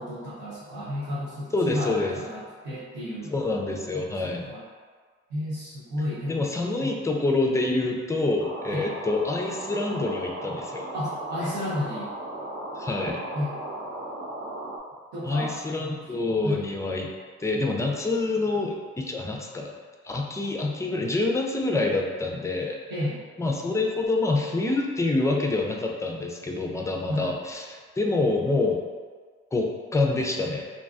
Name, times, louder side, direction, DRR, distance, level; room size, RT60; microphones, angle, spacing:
voice 1, 0.0-3.3 3.9-4.0 4.5-4.6 5.3-6.5 6.8-6.9 8.7-8.9 10.9-12.1 13.3-13.5 15.1-15.9 16.4-16.6 22.9-23.2 27.1-27.3, left 1 dB, 90° right, -11 dB, 0.6 m, -32 dB
voice 2, 1.5-2.2 3.3-4.5 6.3-10.9 12.7-13.2 15.2-17.1 17.4-19.7 20.0-22.8 23.4-28.8 29.5-30.6, left 2 dB, 10° left, 1 dB, 0.4 m, -26 dB
sound 1, 8.4-14.8, right 1 dB, 50° right, 0.5 m, -36 dB
2.5 x 2.2 x 2.3 m, 1.6 s
hypercardioid pair, 45°, 31 cm